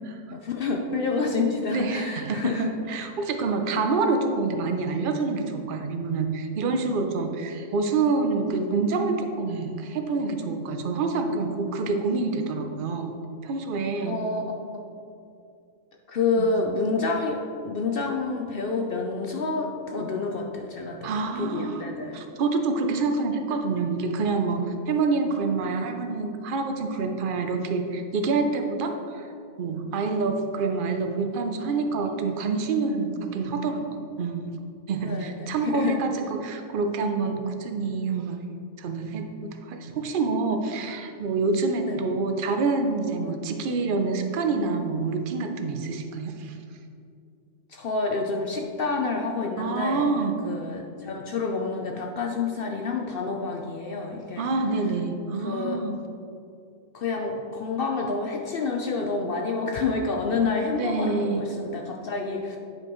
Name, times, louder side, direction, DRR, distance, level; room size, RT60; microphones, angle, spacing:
voice 1, 0.3-2.7 14.1-14.8 16.1-21.1 21.4-22.2 35.0-36.0 41.9-42.0 47.7-50.1 50.4-54.5 55.4-55.8 56.9-62.6, left 4 dB, 60° left, 1 dB, 0.6 m, -28 dB
voice 2, 1.7-13.1 13.4-14.2 16.4-16.5 21.0-29.3 29.6-33.8 34.2-34.5 34.9-38.4 38.8-46.6 49.6-50.4 54.4-55.9 60.7-61.4, right 4 dB, 55° right, 5 dB, 0.6 m, -27 dB
9.4 x 5.2 x 3.0 m, 2.5 s
omnidirectional pair, 1.4 m